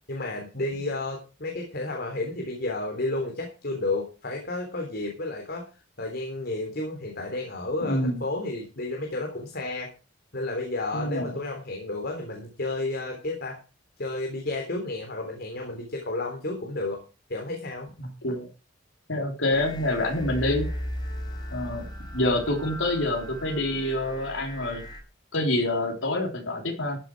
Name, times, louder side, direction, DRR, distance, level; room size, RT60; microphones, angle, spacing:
voice 1, 0.1-5.7 6.0-9.9 10.3-13.6 14.0-17.0 17.3-17.9, left 2 dB, 55° left, 2 dB, 3.5 m, -31 dB
voice 2, 7.8-8.2 10.9-11.3 18.0-18.5 19.1-20.7 21.5-21.9 22.1-24.8 25.3-27.0, left 1 dB, 75° left, 1 dB, 3.6 m, -27 dB
sound 1, 19.5-25.0, equal, 20° left, 5.1 m, -37 dB
14.5 x 9.2 x 4.8 m, 0.32 s
head